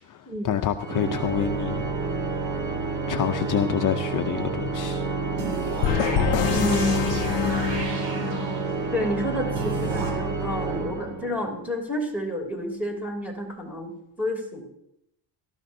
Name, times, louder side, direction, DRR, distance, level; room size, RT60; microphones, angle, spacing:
voice 1, 0.0-1.9 3.1-5.0, left 9 dB, 45° left, 6 dB, 0.6 m, -27 dB
Organ, 0.8-11.6, right 4 dB, 40° right, 1.4 m, -29 dB
sound 1, 5.4-8.9 9.6-10.1, right 3 dB, 75° right, 3.6 m, -32 dB
sound 2, 5.8-8.6, left 12 dB, 85° left, 0.6 m, -26 dB
voice 2, 6.5-7.5 8.9-14.6, equal, 5° right, 2 dB, 2.9 m, -30 dB
18.5 x 13.0 x 2.7 m, 0.79 s
cardioid pair, 150°, 44 cm